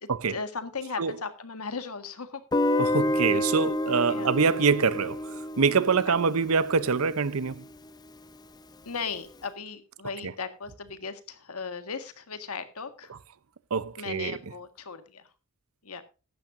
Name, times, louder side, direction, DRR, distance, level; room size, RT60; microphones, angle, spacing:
voice 1, 0.0-2.4 4.1-4.3 6.0-6.1 8.8-13.1 14.0-15.3 15.8-16.0, left 5 dB, 85° left, 1.7 m, -37 dB
Guitar, 2.5-7.4, left 1 dB, 20° left, 0.5 m, -29 dB
voice 2, 2.8-7.6 13.7-14.4, right 5 dB, 75° right, 0.7 m, -25 dB
15.0 x 12.0 x 2.6 m
head